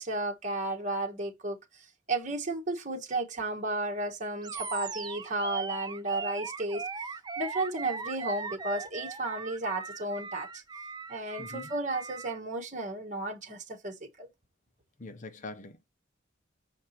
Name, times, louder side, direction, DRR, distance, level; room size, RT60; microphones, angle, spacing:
voice 1, 0.0-1.6 2.1-6.8 7.4-10.6 11.1-14.3, right 2 dB, 40° right, 1.5 m, -33 dB
Animal, 4.4-12.4, right 5 dB, 20° right, 0.5 m, -39 dB
voice 2, 11.4-11.7 15.0-15.8, left 3 dB, 40° left, 0.8 m, -43 dB
6.1 x 4.9 x 4.4 m
head